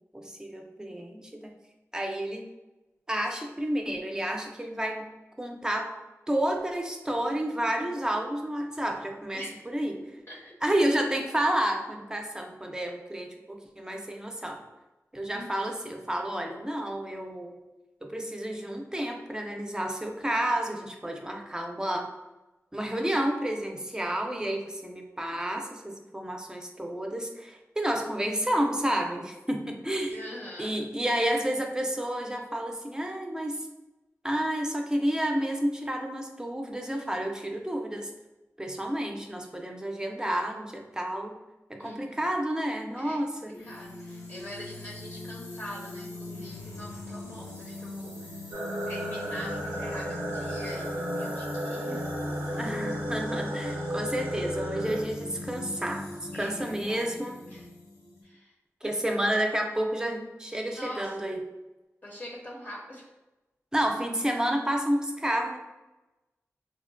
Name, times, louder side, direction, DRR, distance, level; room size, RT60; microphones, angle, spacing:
voice 1, 0.1-1.6 1.9-2.5 3.1-5.1 5.4-5.9 6.3-10.0 10.6-14.6 15.1-17.6 18.0-22.1 22.7-30.2 30.6-33.7 34.2-38.1 38.6-41.4 41.7-43.5 52.6-56.1 56.3-57.4 58.8-61.4 63.7-65.6, right 1 dB, 15° right, 2 dB, 0.4 m, -30 dB
voice 2, 15.3-15.7 30.1-30.7 41.8-42.3 43.0-43.2 43.6-48.4 48.9-52.1 52.5-52.7 56.3-57.0 57.5-57.7 58.2-58.5 58.8-59.2 60.6-61.2 62.0-63.0, left 1 dB, 35° left, -4 dB, 0.6 m, -44 dB
sound 1, 43.5-58.2, left 1 dB, 85° left, 0.7 m, -38 dB
sound 2, 48.5-55.0, right 1 dB, 85° right, 0.5 m, -35 dB
3.8 x 2.1 x 2.4 m, 1.0 s
wide cardioid pair, 60°, 5 cm